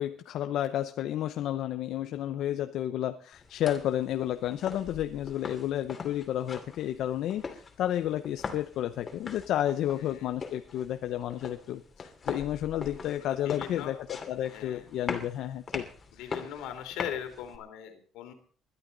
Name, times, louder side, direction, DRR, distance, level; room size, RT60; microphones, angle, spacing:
voice 1, 0.0-15.9 16.3-16.4, left 12 dB, 65° left, 9 dB, 0.8 m, -31 dB
sound 1, 3.3-17.6, left 5 dB, 30° left, 2.7 m, -42 dB
voice 2, 10.0-10.3 13.2-14.0 14.5-14.9 16.1-18.3, left 10 dB, 85° left, 7 dB, 3.1 m, -40 dB
21.0 x 12.0 x 4.0 m, 0.41 s
cardioid pair, 125°, 0 cm